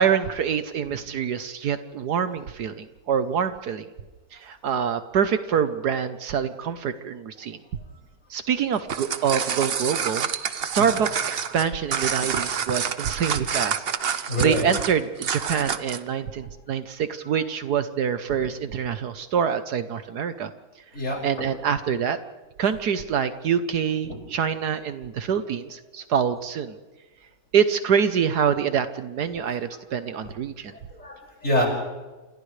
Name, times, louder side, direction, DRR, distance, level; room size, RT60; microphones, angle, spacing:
voice 1, 0.0-3.9 4.3-7.6 8.3-10.3 10.7-20.5 21.2-22.2 22.6-26.8 27.5-30.7, right 7 dB, 70° right, 10 dB, 1.4 m, -25 dB
sound 1, 8.7-16.1, right 7 dB, 50° right, 0.7 m, -28 dB
voice 2, 14.3-14.6 20.9-21.5 24.1-24.2 30.7-31.7, left 1 dB, 45° left, -2 dB, 6.3 m, -27 dB
30.0 x 27.5 x 3.3 m, 1.2 s
omnidirectional pair, 1.9 m